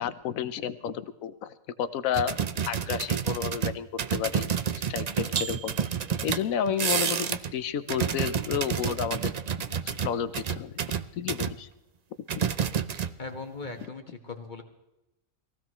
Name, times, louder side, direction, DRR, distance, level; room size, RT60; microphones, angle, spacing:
voice 1, 0.0-2.4 2.7-4.5 4.9-5.7 6.2-9.3 9.8-10.7 11.2-11.7, left 8 dB, 80° left, 12 dB, 1.2 m, -31 dB
sound 1, 2.1-7.5 7.8-11.5 12.3-13.4 13.7-13.9, right 7 dB, 60° right, 0.4 m, -29 dB
voice 2, 13.2-14.6, left 4 dB, 35° left, 4 dB, 1.6 m, -39 dB
22.5 x 16.0 x 3.1 m, 0.92 s
omnidirectional pair, 1.4 m